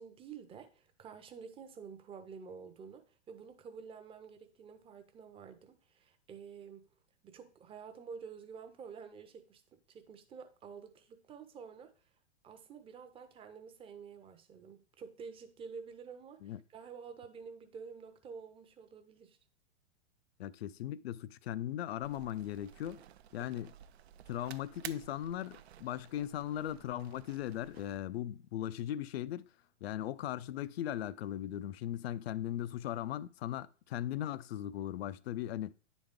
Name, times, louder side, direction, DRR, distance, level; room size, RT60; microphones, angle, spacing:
voice 1, 0.0-6.8 7.2-9.6 9.9-11.9 12.4-19.4, right 6 dB, 15° right, 0.7 m, -49 dB
voice 2, 20.4-23.0 23.3-23.7 24.3-29.5 29.8-35.7, left 12 dB, 60° left, 0.5 m, -38 dB
sound 1, 22.0-28.0, right 10 dB, 60° right, 0.5 m, -53 dB
9.9 x 4.0 x 3.6 m
figure-of-eight pair, 110°, 36 cm